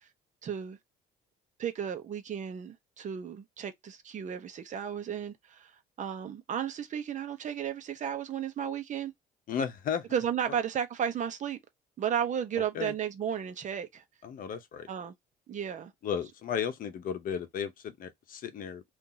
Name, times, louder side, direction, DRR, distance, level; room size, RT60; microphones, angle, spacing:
voice 1, 0.4-0.8 1.6-5.7 6.0-9.1 10.1-11.6 12.0-14.0 14.9-15.1 15.5-15.9, right 8 dB, 45° right, 0.8 m, -34 dB
voice 2, 9.5-10.1 12.7-12.9 14.2-14.9 16.0-18.8, left 7 dB, 55° left, 0.8 m, -34 dB
2.8 x 2.5 x 3.8 m
cardioid pair, 110°, 17 cm